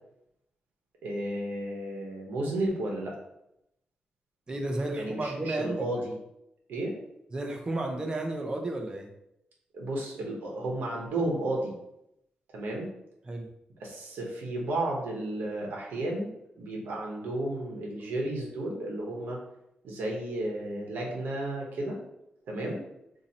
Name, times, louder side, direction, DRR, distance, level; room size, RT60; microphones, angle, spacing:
voice 1, 1.0-3.1 5.0-6.2 6.7-6.9 9.7-11.7 12.5-12.9 13.8-16.3 16.6-19.4 19.8-22.0 22.5-22.8, right 1 dB, 90° right, -2 dB, 1.0 m, -33 dB
voice 2, 4.5-6.0 7.3-9.1 13.3-13.5 22.7-22.8, right 2 dB, 25° right, 2 dB, 0.6 m, -33 dB
2.8 x 2.7 x 4.0 m, 0.82 s
wide cardioid pair, 120°, 3 cm